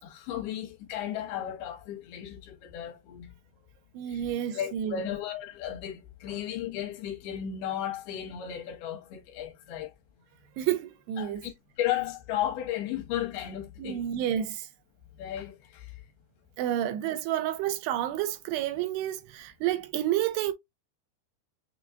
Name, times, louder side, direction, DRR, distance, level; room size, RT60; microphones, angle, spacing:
voice 1, 0.0-3.4 4.1-9.9 11.2-14.0 15.2-15.9 16.8-16.9, left 11 dB, 75° left, 2.9 m, -35 dB
voice 2, 3.9-5.0 10.6-11.5 13.8-14.7 16.6-20.5, right 11 dB, 90° right, 2.7 m, -30 dB
6.8 x 2.3 x 2.6 m
omnidirectional pair, 4.8 m